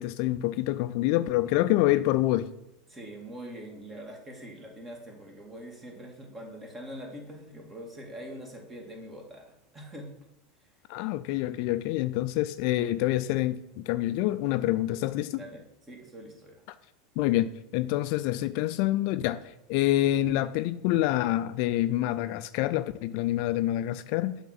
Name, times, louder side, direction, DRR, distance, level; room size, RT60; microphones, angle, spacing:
voice 1, 0.0-2.5 10.9-15.4 17.2-19.4 19.7-24.4, left 15 dB, 60° left, 0.4 m, -27 dB
voice 2, 2.9-9.4 9.7-10.1 15.3-16.6, equal, 25° right, 2.1 m, -43 dB
7.0 x 3.7 x 6.0 m
hypercardioid pair, 100°, 0 cm